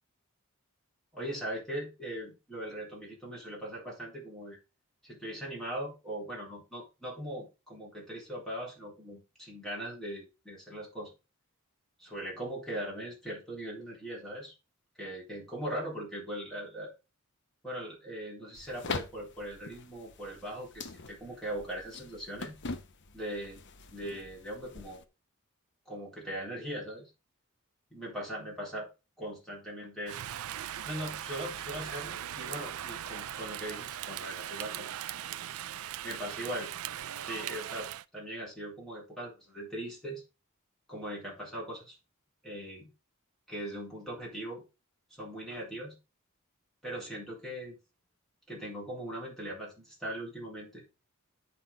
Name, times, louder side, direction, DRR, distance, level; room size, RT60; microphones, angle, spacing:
voice 1, 1.1-4.6 5.0-11.1 12.0-14.5 15.0-16.9 17.6-22.6 23.1-23.6 23.9-25.0 25.9-27.1 27.9-28.9 29.2-30.2 30.9-34.9 36.0-36.7 37.2-40.2 40.9-42.0 42.4-42.9 43.5-44.6 45.2-46.0 46.8-47.8 48.5-50.8, right 1 dB, ahead, -4 dB, 4.0 m, -40 dB
sound 1, 18.5-25.1, left 4 dB, 55° left, 0.9 m, -43 dB
Rain, 30.1-38.0, right 11 dB, 80° right, 0.4 m, -39 dB
9.4 x 4.1 x 5.0 m, 0.28 s
head